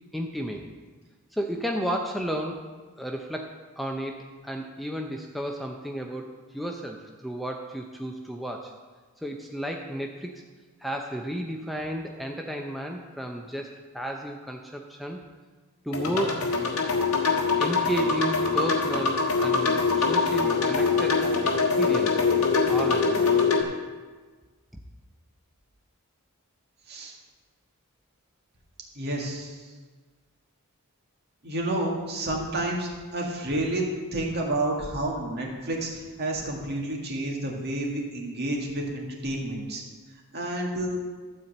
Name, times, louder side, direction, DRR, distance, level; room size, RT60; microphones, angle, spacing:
voice 1, 0.1-0.6 1.3-2.7 3.0-8.7 9.2-10.4 10.8-15.2 15.8-16.5 17.6-22.2 22.7-23.5, equal, ahead, 2 dB, 0.5 m, -33 dB
sound 1, 15.9-23.6, left 4 dB, 70° left, 1.4 m, -23 dB
voice 2, 29.0-29.6 31.4-33.8 34.1-39.8 40.3-41.0, right 1 dB, 50° right, -1 dB, 2.0 m, -30 dB
13.0 x 4.4 x 7.8 m, 1.4 s
head